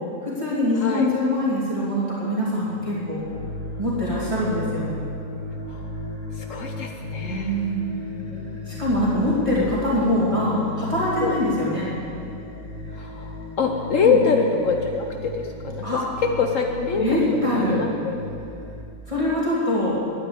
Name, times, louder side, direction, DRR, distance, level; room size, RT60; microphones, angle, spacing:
voice 1, 0.2-3.2 3.8-4.9 7.2-7.9 8.7-11.9 14.0-14.2 15.8-16.0 17.0-17.8 19.1-20.0, left 1 dB, 20° right, -8 dB, 2.8 m, -23 dB
sound 1, 0.7-2.0 2.3-18.8, left 2 dB, 10° left, 1.8 m, -36 dB
voice 2, 6.4-7.6 8.3-8.8 11.2-11.4 12.9-16.0 16.4-18.2, left 5 dB, 65° left, 3 dB, 1.2 m, -25 dB
12.0 x 9.4 x 8.6 m, 2.5 s
omnidirectional pair, 1.5 m